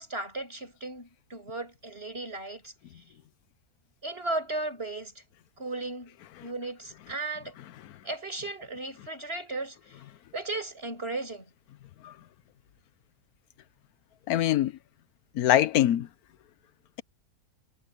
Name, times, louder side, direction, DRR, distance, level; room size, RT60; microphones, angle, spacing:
voice 1, 0.0-3.0 4.0-5.2 5.6-6.2 6.4-7.5 8.0-10.0 10.3-11.5, right 2 dB, 40° right, 6.7 m, -36 dB
voice 2, 14.3-14.7 15.3-16.1, left 12 dB, 80° left, 1.2 m, -23 dB
omnidirectional pair, 1.6 m